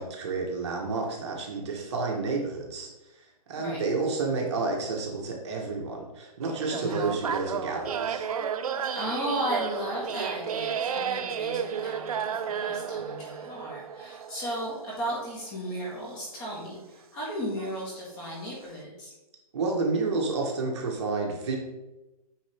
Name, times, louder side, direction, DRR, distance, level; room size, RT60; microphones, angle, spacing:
voice 1, 0.0-2.9 3.5-8.3 19.5-21.6, right 3 dB, 45° right, 0 dB, 1.4 m, -30 dB
sound 1, 6.4-15.7 16.4-16.5 17.6-17.8 18.2-18.5, right 7 dB, 65° right, 0.6 m, -33 dB
voice 2, 6.7-7.1 8.9-19.1, equal, 20° left, -4 dB, 1.8 m, -35 dB
9.0 x 3.9 x 3.5 m, 1.0 s
hypercardioid pair, 165°, 20 cm